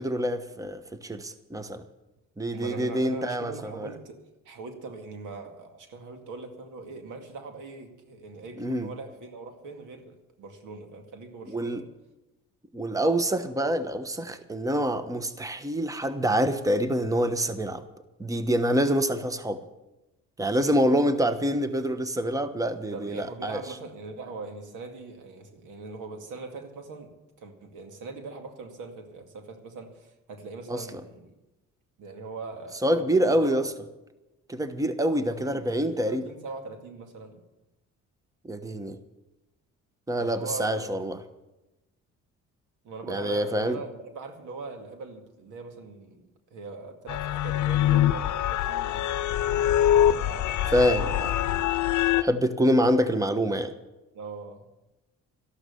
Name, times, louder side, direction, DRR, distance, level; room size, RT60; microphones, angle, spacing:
voice 1, 0.0-1.8 2.4-3.9 8.6-8.9 11.5-11.8 12.7-17.8 18.2-19.6 20.4-23.6 30.7-30.8 32.8-33.6 34.5-36.2 38.4-39.0 40.1-41.1 43.1-43.8 50.7-51.1 52.2-53.7, equal, 10° right, 10 dB, 1.1 m, -26 dB
voice 2, 2.5-4.2 4.5-11.9 20.7-20.9 22.9-31.3 32.0-33.7 35.1-37.4 40.2-40.9 42.8-49.3 50.0-51.3 54.1-54.7, right 3 dB, 90° right, 5 dB, 2.2 m, -41 dB
sound 1, 47.1-52.2, left 11 dB, 75° left, 0.7 m, -24 dB
13.0 x 12.0 x 7.0 m, 0.99 s
cardioid pair, 90°, 30 cm